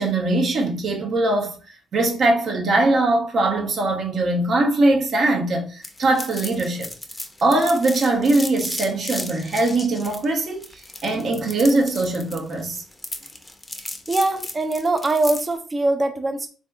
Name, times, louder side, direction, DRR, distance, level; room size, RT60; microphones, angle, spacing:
voice 1, 0.0-1.6 1.9-6.9 7.4-12.8, right 2 dB, 60° right, 0.8 m, -21 dB
sound 1, 5.8-15.5, left 2 dB, 20° left, 0.6 m, -35 dB
voice 2, 14.1-16.5, right 2 dB, 30° right, 0.5 m, -22 dB
3.5 x 2.6 x 2.3 m
supercardioid pair, 70°, 0 cm